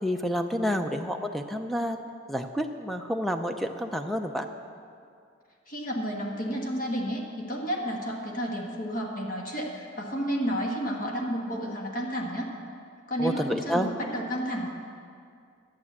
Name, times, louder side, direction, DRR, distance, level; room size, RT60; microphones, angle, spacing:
voice 1, 0.0-2.0 2.3-4.5 13.2-13.9, equal, ahead, 6 dB, 0.6 m, -29 dB
voice 2, 5.7-12.5 13.1-14.7, equal, 45° left, 0 dB, 1.4 m, -31 dB
12.0 x 8.9 x 7.4 m, 2.3 s
head